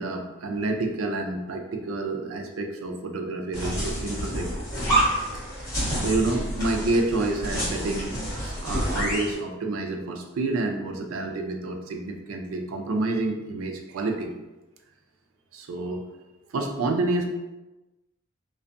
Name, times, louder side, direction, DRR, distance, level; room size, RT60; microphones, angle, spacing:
voice 1, 0.0-4.5 5.9-8.2 8.4-14.3 15.5-16.0 16.5-17.3, right 2 dB, 85° right, 4 dB, 0.4 m, -28 dB
sound 1, 3.5-9.4, right 1 dB, 20° left, 1.3 m, -28 dB
2.5 x 2.2 x 2.5 m, 1.1 s
head